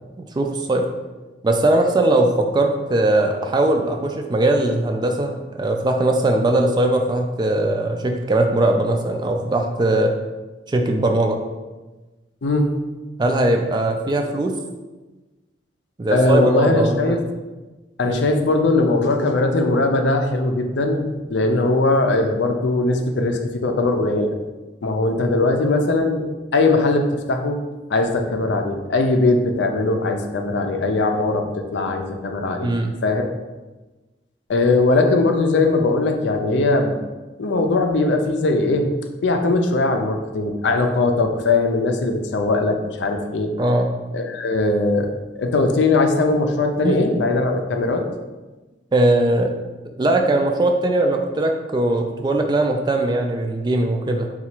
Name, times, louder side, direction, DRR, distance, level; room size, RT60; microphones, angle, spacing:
voice 1, 0.3-0.9 1.4-10.1 10.7-11.4 13.2-14.5 16.0-17.2 18.0-18.2 32.6-32.9 43.6-43.9 46.8-47.1 48.9-49.5 50.0-54.3, right 2 dB, 25° right, 3 dB, 0.3 m, -20 dB
voice 2, 16.1-17.2 18.0-24.3 24.8-26.2 26.5-27.0 27.3-27.6 27.9-31.4 31.7-32.7 33.0-33.2 34.5-37.0 37.4-38.9 39.2-43.5 44.1-45.1 45.4-48.0, left 2 dB, 80° left, 5 dB, 0.5 m, -20 dB
3.9 x 2.4 x 4.4 m, 1.2 s
head